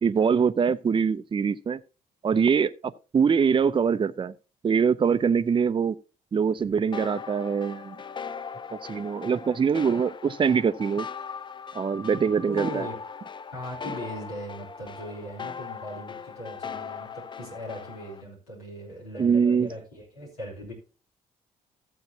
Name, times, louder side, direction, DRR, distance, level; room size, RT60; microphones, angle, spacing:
voice 1, 0.0-1.8 2.2-4.3 4.6-5.9 6.3-8.0 8.9-11.1 11.7-12.9 19.2-19.7, right 6 dB, 25° right, 0.5 m, -23 dB
sound 1, 6.9-18.2, left 6 dB, 25° left, 0.5 m, -39 dB
voice 2, 12.5-13.0 13.5-20.7, equal, 80° left, 3.5 m, -39 dB
14.5 x 7.9 x 2.9 m
figure-of-eight pair, 40°, 19 cm